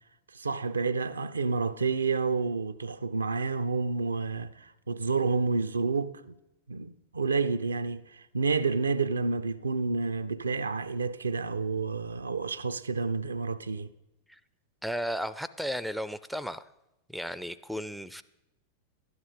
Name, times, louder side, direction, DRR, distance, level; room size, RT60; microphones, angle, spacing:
voice 1, 0.3-6.3 6.7-13.9, right 4 dB, 75° right, 0.4 m, -29 dB
voice 2, 14.8-16.6 17.1-18.2, equal, ahead, 0.4 m, -34 dB
12.5 x 9.5 x 5.0 m
figure-of-eight pair, 90°, 0 cm